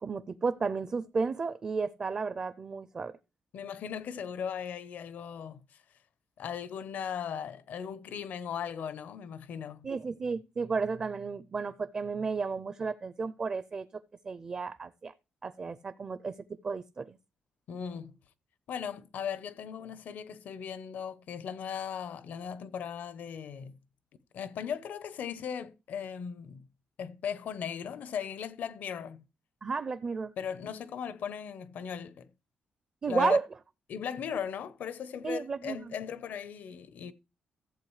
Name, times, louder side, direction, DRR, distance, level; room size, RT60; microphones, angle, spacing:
voice 1, 0.0-3.1 9.8-13.9 14.2-15.1 15.4-16.4 16.6-17.2 29.6-30.3 33.0-33.4 35.2-35.9, right 4 dB, 30° right, 0.4 m, -32 dB
voice 2, 3.5-5.6 6.4-9.9 17.7-18.2 18.7-23.8 24.3-26.6 27.0-29.2 30.4-32.3 33.1-33.4 33.9-37.1, left 7 dB, 65° left, 0.8 m, -37 dB
14.0 x 7.7 x 3.2 m
wide cardioid pair, 165°, 3 cm